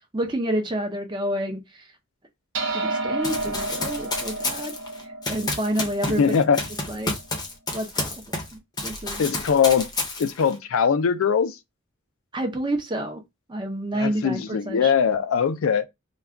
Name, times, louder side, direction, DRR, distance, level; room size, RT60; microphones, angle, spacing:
voice 1, 0.1-1.9 2.7-4.7 5.3-6.3 6.9-7.1 7.7-8.2 8.5-9.2 12.3-13.2 13.5-14.9, right 1 dB, 20° right, 0.5 m, -29 dB
sound 1, 2.5-7.2, right 2 dB, 65° right, 0.7 m, -31 dB
Run, 3.2-8.5 8.8-10.5, left 2 dB, 20° left, 0.6 m, -30 dB
voice 2, 6.2-6.6 9.2-9.9 10.2-11.5 13.9-15.9, left 6 dB, 85° left, 0.4 m, -21 dB
2.3 x 2.2 x 3.4 m
head